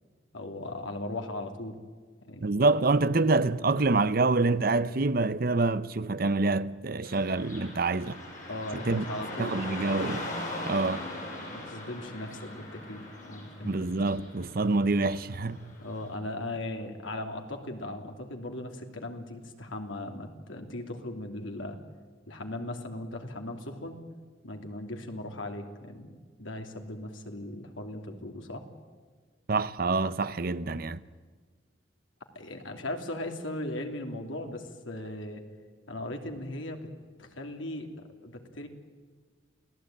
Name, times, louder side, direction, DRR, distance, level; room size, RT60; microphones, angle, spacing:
voice 1, 0.3-1.8 2.2-2.5 3.1-3.2 8.5-9.8 11.5-13.8 15.8-21.8 22.3-24.0 24.4-28.6 32.3-35.4 35.9-36.9 37.2-38.7, left 1 dB, 85° left, 3.0 m, -38 dB
voice 2, 2.4-8.1 8.7-9.1 9.4-10.3 10.7-11.1 13.6-15.6 29.5-31.0, right 3 dB, 50° right, 0.8 m, -26 dB
Car passing by / Traffic noise roadway noise, 7.0-16.1, left 1 dB, 40° left, 7.6 m, -40 dB
28.5 x 17.0 x 9.1 m
head